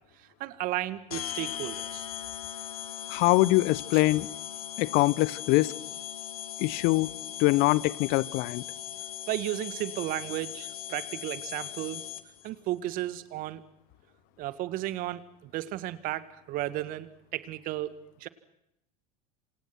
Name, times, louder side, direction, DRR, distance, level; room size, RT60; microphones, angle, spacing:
voice 1, 0.4-2.1 3.9-4.0 9.3-12.0 12.4-13.6 14.4-18.0 18.2-18.3, right 15 dB, 50° right, 1.9 m, -34 dB
sound 1, 1.1-12.5, left 10 dB, 75° left, 1.8 m, -39 dB
voice 2, 3.1-4.3 4.8-5.7 6.6-7.1 7.4-8.6, left 20 dB, 50° left, 0.9 m, -23 dB
28.0 x 27.5 x 6.1 m
figure-of-eight pair, 80°, 19 cm